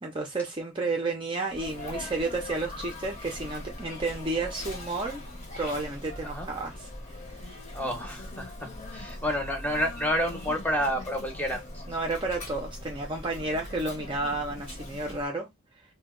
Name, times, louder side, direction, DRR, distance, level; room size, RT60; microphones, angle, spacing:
voice 1, 0.0-5.2 5.6-6.9 7.4-7.6 9.0-9.1 11.9-15.5, right 2 dB, 25° right, 0.5 m, -31 dB
Sneeze, 1.5-15.3, left 1 dB, 35° left, 0.9 m, -41 dB
voice 2, 7.7-11.8, equal, 10° left, 0.8 m, -30 dB
2.7 x 2.1 x 3.6 m
head